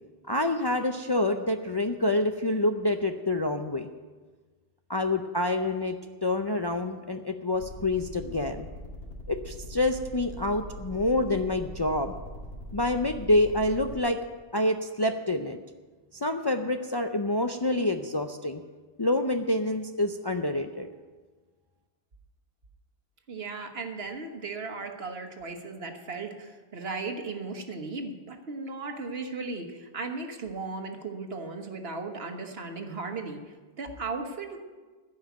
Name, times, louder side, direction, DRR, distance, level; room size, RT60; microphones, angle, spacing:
voice 1, 0.3-3.9 4.9-6.0 6.2-8.7 9.3-12.1 12.7-14.2 14.5-15.6 16.1-18.6 19.0-20.9, left 1 dB, 30° left, 5 dB, 0.5 m, -27 dB
sound 1, 7.5-14.0, left 2 dB, 80° left, 2.3 m, -42 dB
voice 2, 23.3-34.6, right 3 dB, 65° right, 4 dB, 1.5 m, -36 dB
15.0 x 5.6 x 9.2 m, 1.3 s
omnidirectional pair, 1.1 m